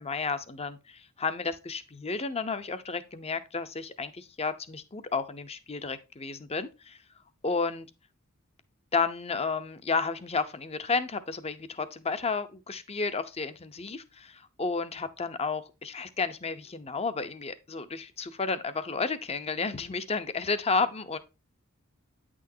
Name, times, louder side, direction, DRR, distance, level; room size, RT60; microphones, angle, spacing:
voice 1, 0.0-7.0 7.4-7.9 8.9-21.2, left 4 dB, 30° left, 0.7 m, -32 dB
9.3 x 6.3 x 2.7 m
head